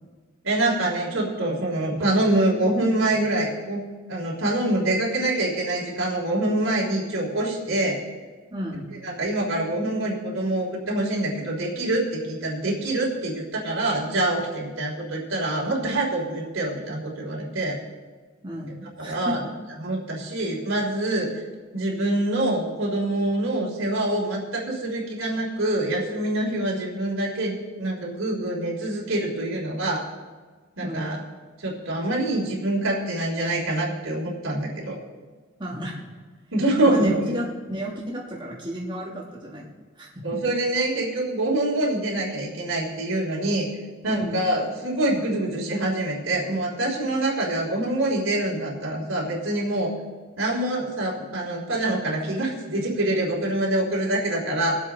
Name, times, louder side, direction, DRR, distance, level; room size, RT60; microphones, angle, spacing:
voice 1, 0.4-3.8 4.1-8.0 9.0-17.8 19.0-19.4 19.8-21.3 21.7-30.1 30.8-31.2 31.6-35.0 36.5-37.4 40.2-43.7 44.0-49.9 50.4-54.8, right 1 dB, 85° right, -4 dB, 3.4 m, -25 dB
voice 2, 8.5-9.0 18.4-19.5 30.8-31.1 35.6-36.2 36.8-40.4 44.1-44.4, equal, 25° right, -3 dB, 1.4 m, -33 dB
20.5 x 7.7 x 3.8 m, 1.4 s
head